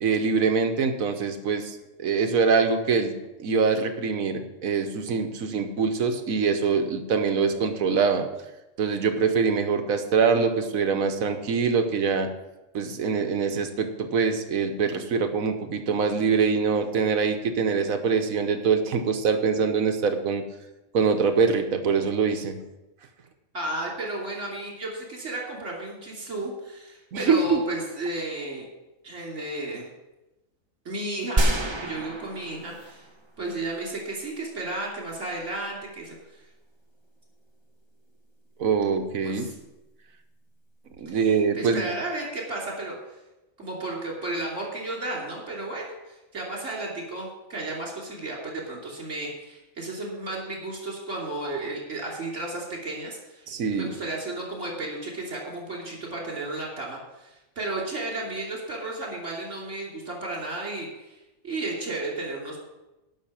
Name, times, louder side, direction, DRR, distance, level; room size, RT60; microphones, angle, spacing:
voice 1, 0.0-8.3 8.8-12.3 12.7-20.4 20.9-22.6 27.1-27.6 38.6-39.5 41.0-41.9 53.5-53.9, right 5 dB, 80° right, 7 dB, 1.5 m, -24 dB
voice 2, 23.5-28.7 29.0-29.9 30.8-31.5 31.8-33.1 33.4-36.2 39.2-39.5 41.5-43.0 43.6-61.2 61.4-62.6, right 2 dB, 60° right, -3 dB, 3.4 m, -33 dB
sound 1, 31.4-33.3 33.6-33.7, right 1 dB, 25° right, 0.9 m, -27 dB
11.0 x 6.2 x 7.3 m, 1.0 s
omnidirectional pair, 1.4 m